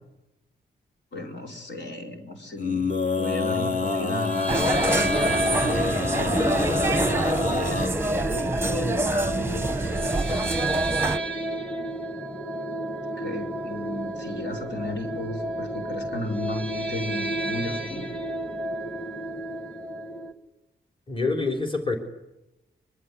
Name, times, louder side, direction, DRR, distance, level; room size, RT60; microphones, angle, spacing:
voice 1, 1.1-2.9 3.2-4.6 4.9-6.4 7.5-9.9 10.2-10.9 13.2-18.1, left 2 dB, 75° left, 1 dB, 4.7 m, -35 dB
Male singing, 2.6-7.9, left 4 dB, 45° left, 2.4 m, -27 dB
sound 1, 4.2-20.3, right 2 dB, 5° left, 1.8 m, -32 dB
sound 2, 4.5-11.2, right 2 dB, 10° right, 1.0 m, -26 dB
voice 2, 21.1-22.0, left 3 dB, 30° left, 2 dB, 3.9 m, -26 dB
23.5 x 23.5 x 8.4 m, 0.97 s
wide cardioid pair, 115°, 19 cm